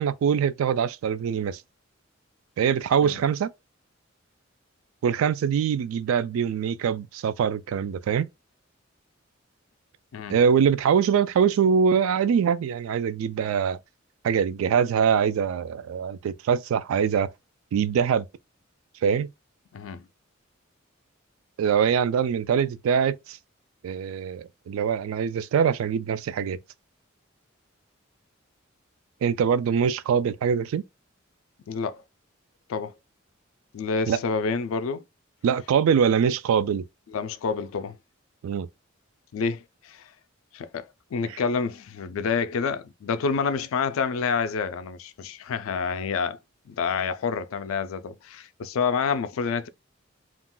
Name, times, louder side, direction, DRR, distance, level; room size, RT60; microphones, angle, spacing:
voice 1, 0.0-1.6 2.6-3.5 5.0-8.3 10.3-13.8 14.2-17.3 17.7-18.3 19.0-19.3 21.6-23.4 23.8-26.6 29.2-30.8 34.1-34.2 35.4-36.8 38.4-38.7 41.3-41.4, right 7 dB, 85° right, 0.3 m, -23 dB
voice 2, 19.7-20.0 31.7-32.0 32.7-32.9 33.7-35.0 37.1-38.0 39.3-40.1 40.5-46.4 46.7-49.7, left 5 dB, 80° left, 0.4 m, -28 dB
2.4 x 2.1 x 3.7 m
head